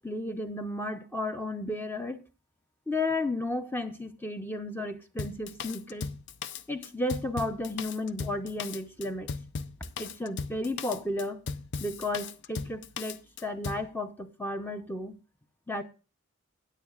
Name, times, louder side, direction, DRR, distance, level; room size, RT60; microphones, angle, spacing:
voice 1, 0.0-2.2 2.9-6.1 6.7-9.3 10.0-11.4 11.8-15.2 15.7-15.8, left 2 dB, 10° left, 0.7 m, -33 dB
Drum kit, 5.2-13.9, left 5 dB, 50° left, 0.5 m, -37 dB
16.5 x 9.8 x 2.4 m
head